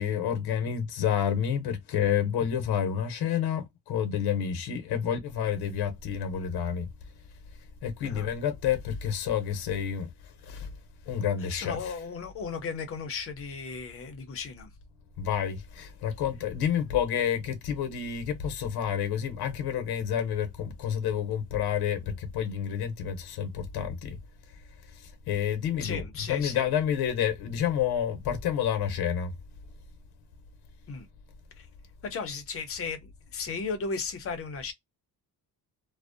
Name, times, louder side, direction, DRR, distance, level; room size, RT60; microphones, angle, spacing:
voice 1, 0.0-6.9 7.8-10.1 10.4-10.7 11.1-12.0 15.2-24.2 24.9-29.3, left 8 dB, 90° left, 0.7 m, -29 dB
voice 2, 11.4-14.7 25.8-26.7 30.9-31.1 31.6-31.7 32.0-34.7, left 5 dB, 35° left, 0.5 m, -35 dB
2.5 x 2.0 x 2.4 m
cardioid pair, 180°, 38 cm